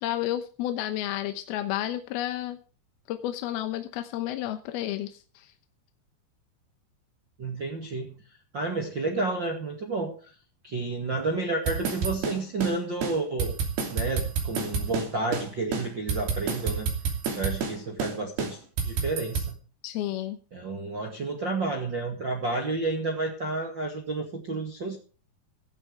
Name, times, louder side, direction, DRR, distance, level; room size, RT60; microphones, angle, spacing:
voice 1, 0.0-2.6 3.1-5.5 19.8-20.4, left 13 dB, 75° left, 8 dB, 2.5 m, -31 dB
voice 2, 7.4-8.2 8.5-10.3 10.6-13.5 13.9-16.9 17.4-19.5 20.5-25.0, right 3 dB, 40° right, 1 dB, 1.8 m, -30 dB
sound 1, 11.7-12.8 13.0-13.1 13.4-15.1 15.3-15.5 15.7-17.8 18.0-18.1 18.4-19.5, right 5 dB, 60° right, 4.8 m, -29 dB
16.5 x 14.0 x 3.4 m, 0.37 s
omnidirectional pair, 5.2 m